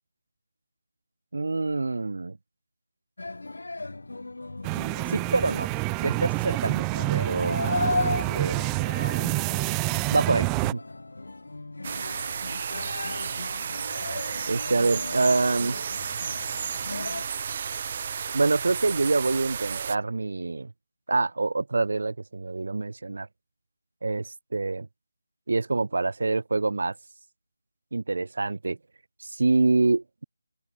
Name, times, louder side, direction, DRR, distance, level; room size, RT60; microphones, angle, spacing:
voice 1, 1.3-2.4 5.1-5.7 6.0-6.8 7.1-7.6 8.0-8.6 10.1-10.8 14.5-15.8 18.3-20.7 21.1-23.3 24.0-24.9 25.5-26.9 27.9-28.8 29.2-30.2, right 3 dB, 65° right, 6.7 m, -26 dB
sound 1, 3.2-17.2, left 2 dB, 80° left, 6.2 m, -36 dB
sound 2, 4.6-10.7, right 37 dB, 10° right, 0.3 m, -28 dB
sound 3, 11.8-20.0, right 7 dB, 30° right, 1.5 m, -32 dB
open air
figure-of-eight pair, 170°, 0 cm